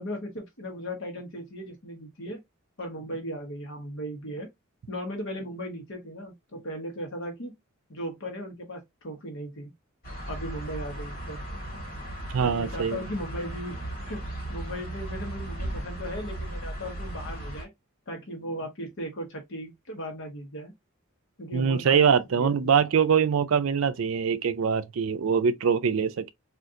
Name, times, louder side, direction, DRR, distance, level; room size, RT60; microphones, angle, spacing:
voice 1, 0.0-2.4 2.8-4.5 4.9-7.5 7.9-9.7 10.3-11.4 12.4-13.8 14.0-17.7 18.1-20.7 21.4-22.7, equal, 60° left, 1.0 m, -37 dB
sound 1, 10.0-17.6, right 1 dB, 45° left, 1.6 m, -36 dB
voice 2, 12.3-13.0 21.5-26.3, right 6 dB, 70° right, 0.4 m, -23 dB
3.7 x 2.5 x 2.6 m
head